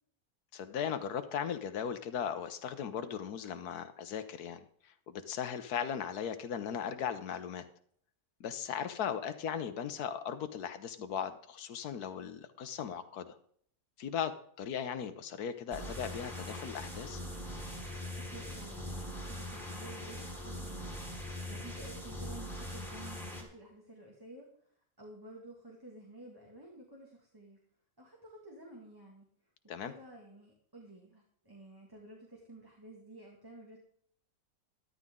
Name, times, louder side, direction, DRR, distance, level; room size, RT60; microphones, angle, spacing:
voice 1, 0.5-7.6 8.4-13.3 14.0-17.2 29.7-29.9, left 8 dB, 80° left, 10 dB, 1.4 m, -38 dB
sound 1, 15.7-23.4, left 1 dB, ahead, 3.6 m, -42 dB
voice 2, 18.2-27.6 28.0-29.3 29.8-33.8, right 2 dB, 15° right, -2 dB, 2.0 m, -52 dB
13.5 x 12.0 x 3.7 m, 0.62 s
omnidirectional pair, 1.6 m